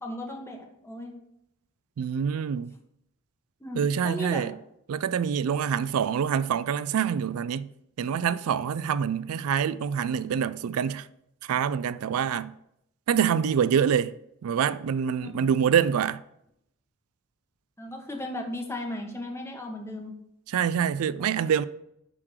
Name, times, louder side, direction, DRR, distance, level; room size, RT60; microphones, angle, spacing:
voice 1, 0.0-1.1 3.6-4.5 15.2-15.3 17.8-20.1, left 1 dB, 10° left, 1.3 m, -36 dB
voice 2, 2.0-2.7 3.8-4.5 4.9-7.7 8.0-11.1 11.4-12.5 13.1-14.1 14.4-16.2 20.5-21.7, right 7 dB, 90° right, 0.4 m, -26 dB
11.0 x 3.7 x 4.9 m
head